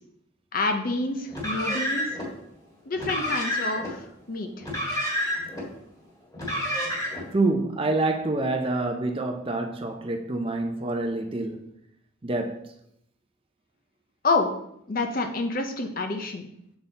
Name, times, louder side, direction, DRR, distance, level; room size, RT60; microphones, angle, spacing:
voice 1, 0.5-2.1 2.9-4.0 4.3-4.5 14.2-14.5 14.9-16.5, left 3 dB, 45° left, 0.7 m, -27 dB
Car, 1.3-2.3 2.9-3.9 4.6-5.6 6.3-7.3, left 1 dB, 20° left, 1.7 m, -29 dB
voice 2, 7.3-11.7 12.2-12.7, right 2 dB, 25° right, 0.5 m, -27 dB
6.9 x 4.0 x 4.0 m
head